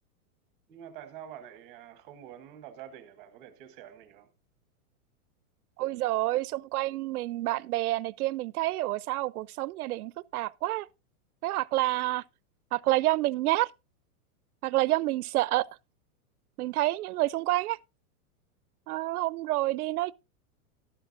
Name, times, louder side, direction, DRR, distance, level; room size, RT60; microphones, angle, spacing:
voice 1, 0.7-4.3 11.8-12.0, right 10 dB, 15° right, 0.8 m, -47 dB
voice 2, 5.8-10.9 11.4-12.2 12.7-13.7 14.6-15.7 16.6-17.8 18.9-20.1, right 17 dB, 85° right, 0.5 m, -28 dB
12.5 x 12.0 x 2.5 m
supercardioid pair, 175°, 43 cm